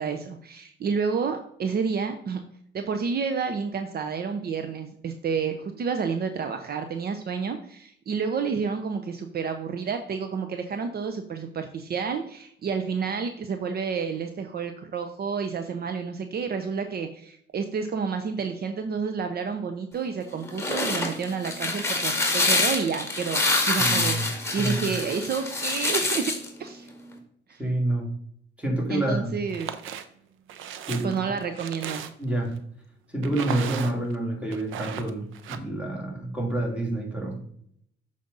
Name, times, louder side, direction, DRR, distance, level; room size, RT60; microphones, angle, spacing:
voice 1, 0.0-2.4 2.7-23.4 23.7-24.2 24.5-26.3 26.6-26.9 27.5-27.6 28.9-29.7 31.0-32.1, right 5 dB, 50° right, 7 dB, 0.7 m, -30 dB
sound 1, 20.3-26.5, left 2 dB, 15° left, 2.0 m, -26 dB
voice 2, 23.8-24.3 24.5-24.9 27.6-28.1 28.6-29.5 30.9-31.1 32.2-32.6 33.1-37.4, right 1 dB, 5° right, -2 dB, 3.0 m, -28 dB
sound 2, 29.5-30.0 30.5-32.4 33.2-34.1 34.5-35.6, right 9 dB, 90° right, 0.7 m, -36 dB
7.0 x 5.1 x 3.9 m, 0.67 s
cardioid pair, 90°, 20 cm